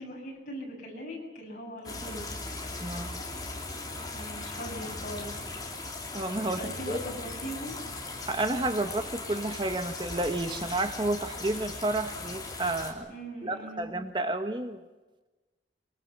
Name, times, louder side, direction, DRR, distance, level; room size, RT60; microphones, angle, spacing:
voice 1, 0.0-2.3 4.1-5.4 6.6-7.8 13.1-13.9, equal, 45° left, -1 dB, 7.7 m, -40 dB
sound 1, 1.8-12.9, left 3 dB, 20° left, 3.2 m, -38 dB
voice 2, 2.8-3.2 6.1-7.0 8.2-13.1 13.4-14.8, right 2 dB, 25° right, 8 dB, 1.2 m, -31 dB
24.0 x 23.0 x 7.2 m, 1.2 s
head